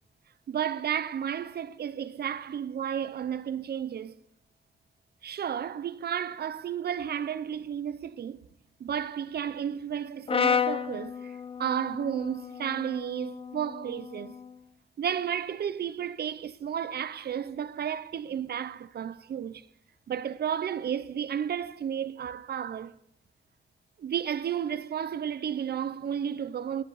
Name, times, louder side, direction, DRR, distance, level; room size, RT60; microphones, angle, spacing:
voice 1, 0.5-4.2 5.2-8.5 8.8-14.4 15.0-19.7 20.1-22.9 24.0-26.8, right 9 dB, 60° right, 0.7 m, -32 dB
Brass instrument, 10.3-14.5, left 6 dB, 30° left, 0.5 m, -32 dB
12.5 x 10.0 x 4.1 m
wide cardioid pair, 125°, 19 cm